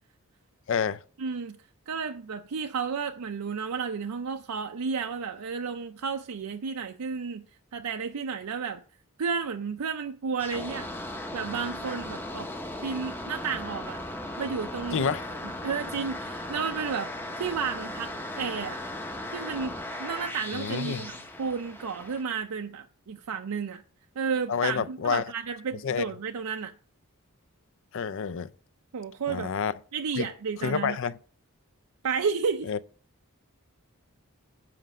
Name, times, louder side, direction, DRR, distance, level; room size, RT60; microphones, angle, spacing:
voice 1, 0.7-1.0 14.9-15.2 20.5-21.0 24.5-25.2 25.8-26.1 27.9-28.5 29.3-29.7 30.1-30.3 30.6-31.2 32.7-32.8, left 6 dB, 60° left, 0.4 m, -28 dB
voice 2, 1.2-1.6 1.9-7.4 7.7-8.8 9.2-10.9 11.3-12.5 12.8-14.0 14.4-15.2 15.6-17.1 17.4-18.8 19.3-23.8 24.2-26.7 28.9-29.5 29.9-31.0 32.0-32.7, right 5 dB, 80° right, 0.5 m, -32 dB
sound 1, 10.4-22.2, left 1 dB, 10° left, 0.7 m, -37 dB
7.6 x 5.2 x 6.4 m
head